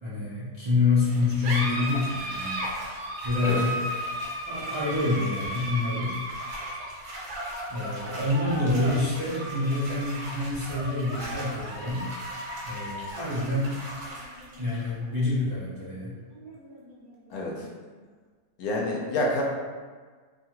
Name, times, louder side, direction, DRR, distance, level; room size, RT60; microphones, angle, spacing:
voice 1, 0.0-2.6 3.2-3.8 4.5-6.2 7.7-12.1 12.6-13.8 14.6-16.1, left 3 dB, 50° right, -12 dB, 0.3 m, -27 dB
sound 1, 1.0-18.0, right 1 dB, 70° right, 1.2 m, -36 dB
voice 2, 17.3-17.6 18.6-19.4, left 1 dB, 70° left, -2 dB, 1.0 m, -28 dB
2.7 x 2.4 x 2.8 m, 1.5 s
omnidirectional pair, 1.7 m